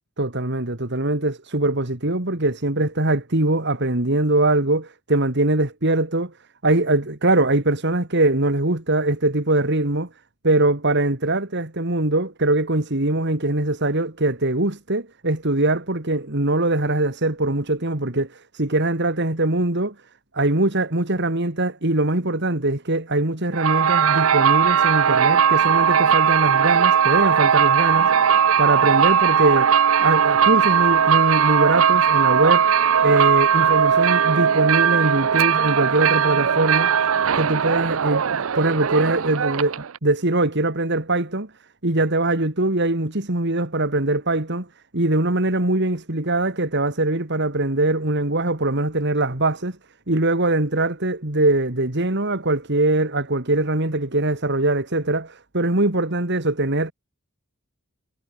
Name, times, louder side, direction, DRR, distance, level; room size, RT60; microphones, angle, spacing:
voice 1, 0.2-6.3 6.6-10.1 10.4-19.9 20.3-29.7 30.0-32.7 33.0-36.9 37.4-41.5 41.8-44.7 44.9-49.8 50.1-56.9, right 2 dB, 55° right, 2.7 m, -22 dB
sound 1, 23.5-40.0, right 7 dB, 70° right, 0.6 m, -18 dB
head